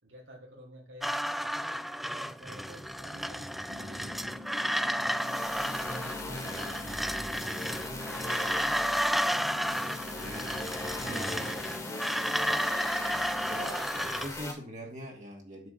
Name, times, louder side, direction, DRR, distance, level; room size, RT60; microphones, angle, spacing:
voice 1, 0.0-1.2 2.0-4.3 4.7-7.1 7.4-9.2, equal, 80° right, -1 dB, 4.0 m, -52 dB
sound 1, 1.0-14.3, equal, ahead, 0.4 m, -32 dB
sound 2, 3.7-13.7, left 1 dB, 60° right, 1.4 m, -46 dB
sound 3, 5.1-14.5, left 2 dB, 20° left, 2.3 m, -40 dB
voice 2, 10.2-10.6 11.0-11.3 13.0-15.7, equal, 40° right, 0 dB, 2.4 m, -43 dB
9.5 x 5.0 x 8.0 m, 0.41 s
head